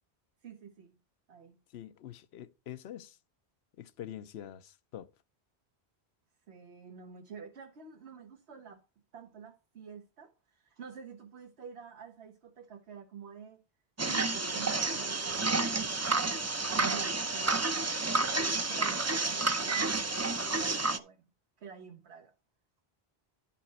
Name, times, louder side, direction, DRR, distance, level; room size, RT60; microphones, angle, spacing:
voice 1, 0.4-1.0 1.3-1.6 6.5-8.8 9.1-13.6 14.0-16.4 16.7-21.2 21.6-22.3, right 6 dB, 85° right, 1.2 m, -48 dB
voice 2, 1.7-3.2 3.8-5.1, left 11 dB, 80° left, 0.9 m, -45 dB
sound 1, 14.0-21.0, right 3 dB, 25° right, 0.4 m, -30 dB
11.0 x 5.8 x 4.1 m
omnidirectional pair, 1.1 m